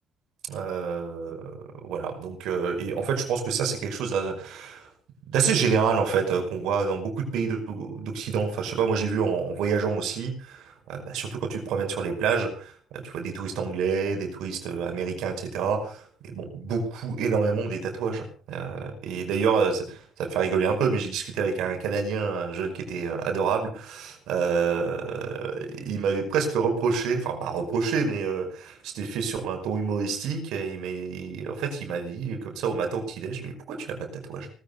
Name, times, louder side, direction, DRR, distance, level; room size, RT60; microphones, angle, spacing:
voice 1, 0.5-4.9 5.3-34.5, right 5 dB, 65° right, 5 dB, 5.4 m, -28 dB
19.0 x 13.5 x 5.5 m, 0.42 s
hypercardioid pair, 50°, 0 cm